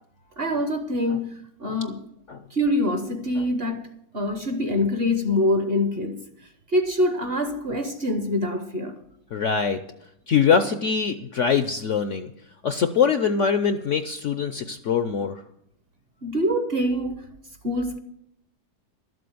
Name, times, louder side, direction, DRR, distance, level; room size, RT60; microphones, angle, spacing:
voice 1, 0.4-2.0 2.5-6.2 6.7-9.0 16.2-17.3 17.6-18.0, left 1 dB, 45° right, 0.9 m, -25 dB
voice 2, 9.3-9.8 10.3-12.3 12.6-15.4, left 6 dB, 65° left, 0.8 m, -23 dB
12.5 x 7.7 x 7.8 m
omnidirectional pair, 1.9 m